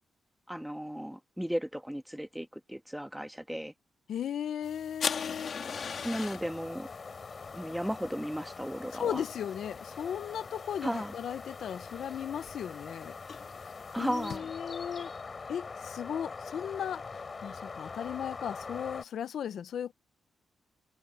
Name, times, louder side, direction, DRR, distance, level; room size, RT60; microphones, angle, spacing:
voice 1, 0.5-3.7 6.0-6.9 7.5-9.2 10.8-11.1 13.9-14.5, equal, 5° right, 1.6 m, -35 dB
voice 2, 4.1-5.6 8.9-13.1 14.0-15.1 15.5-17.0 17.4-19.9, left 9 dB, 80° left, 0.9 m, -36 dB
sound 1, 4.6-14.4, left 6 dB, 60° left, 2.2 m, -42 dB
sound 2, 5.6-19.0, left 4 dB, 45° left, 7.3 m, -43 dB
cardioid pair, 70°, 0 cm